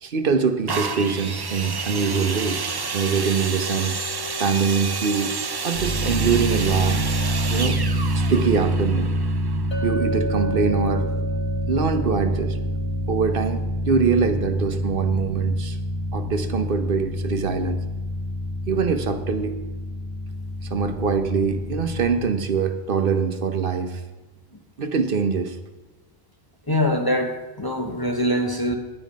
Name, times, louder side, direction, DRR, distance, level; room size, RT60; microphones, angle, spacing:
voice 1, 0.0-2.6 2.9-4.0 4.4-7.1 7.5-7.8 8.1-9.1 9.8-11.1 11.7-12.6 13.1-13.6 13.9-15.8 16.1-17.8 18.7-19.6 20.7-24.0 24.8-25.6, right 5 dB, 60° right, 8 dB, 1.0 m, -23 dB
sound 1, 0.7-10.4 11.1-11.2, right 4 dB, 30° right, 0.4 m, -30 dB
sound 2, 5.7-22.1, equal, 85° left, 2.8 m, -27 dB
Chink clink, 9.7-13.9, right 1 dB, 60° left, 1.1 m, -33 dB
voice 2, 26.7-28.8, equal, 25° left, 2 dB, 0.8 m, -23 dB
11.0 x 9.3 x 5.1 m, 1.2 s
omnidirectional pair, 1.1 m